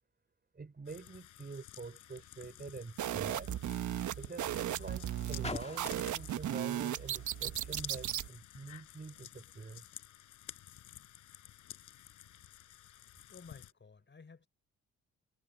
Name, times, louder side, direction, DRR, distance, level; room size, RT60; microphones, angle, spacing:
voice 1, 0.5-3.5 4.2-9.8, right 4 dB, 30° right, 4.5 m, -46 dB
sound 1, 0.8-13.7, left 12 dB, 85° left, 4.9 m, -52 dB
Car, 1.9-8.4 9.2-9.3, left 3 dB, 20° left, 1.7 m, -51 dB
sound 2, 3.0-8.3, right 11 dB, 75° right, 1.3 m, -36 dB
voice 2, 13.0-14.5, left 4 dB, 40° left, 5.7 m, -56 dB
cardioid pair, 70°, 30 cm